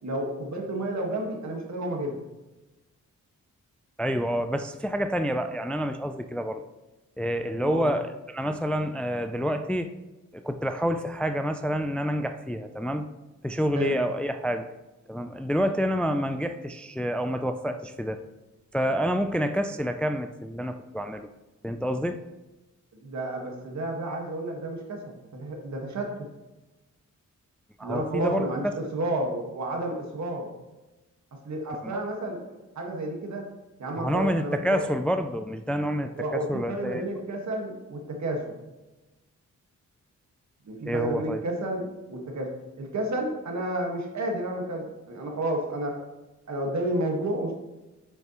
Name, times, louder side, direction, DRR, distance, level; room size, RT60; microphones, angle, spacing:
voice 1, 0.0-2.2 7.5-7.9 13.7-14.0 23.0-26.3 27.8-30.5 31.3-32.4 32.7-33.5 33.8-34.8 36.1-38.5 40.7-42.5 42.8-46.0 46.5-47.5, right 1 dB, 65° right, 1 dB, 1.6 m, -31 dB
voice 2, 4.0-6.6 7.2-9.9 10.3-13.1 13.4-14.7 15.1-18.2 18.7-21.3 21.6-22.2 27.8-28.7 31.8-32.0 34.0-37.0 40.8-41.4, equal, 5° left, 8 dB, 0.3 m, -28 dB
7.5 x 5.7 x 3.0 m, 1.1 s
cardioid pair, 80°, 31 cm